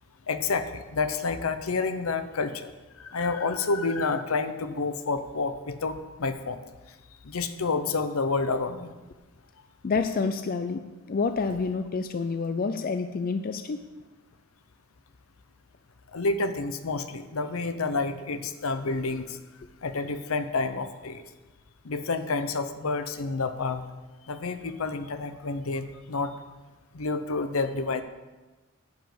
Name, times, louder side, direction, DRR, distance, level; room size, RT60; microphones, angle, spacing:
voice 1, 0.3-2.7 3.0-6.6 7.2-8.9 16.1-19.4 19.8-21.2 21.8-23.8 24.3-26.3 26.9-28.0, left 3 dB, 75° left, 10 dB, 0.8 m, -29 dB
voice 2, 9.8-13.8, left 4 dB, 40° left, 8 dB, 0.4 m, -28 dB
10.5 x 5.2 x 7.7 m, 1.2 s
head